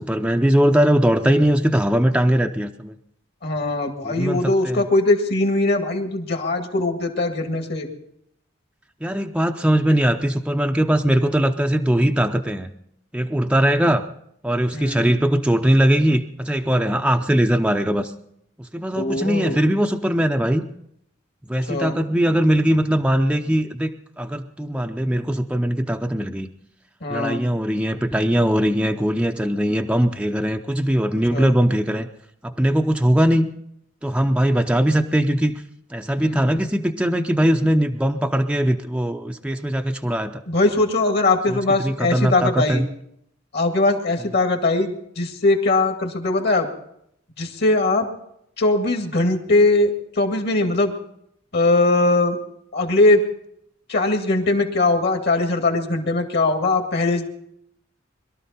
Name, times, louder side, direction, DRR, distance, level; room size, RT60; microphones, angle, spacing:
voice 1, 0.0-2.9 4.0-4.9 9.0-12.7 13.1-14.0 14.4-18.1 18.7-20.6 21.5-26.5 27.1-32.1 32.4-33.5 34.0-35.6 35.9-40.4 41.5-42.9, equal, 5° right, 4 dB, 0.6 m, -20 dB
voice 2, 3.4-7.9 14.7-15.1 19.0-19.6 21.7-22.0 27.0-27.5 31.3-31.5 36.2-36.5 40.5-42.8 43.5-46.7 47.4-48.1 48.6-50.9 51.5-52.4 52.7-53.2 53.9-57.3, left 2 dB, 55° left, 5 dB, 2.1 m, -20 dB
22.0 x 12.5 x 4.3 m, 0.73 s
head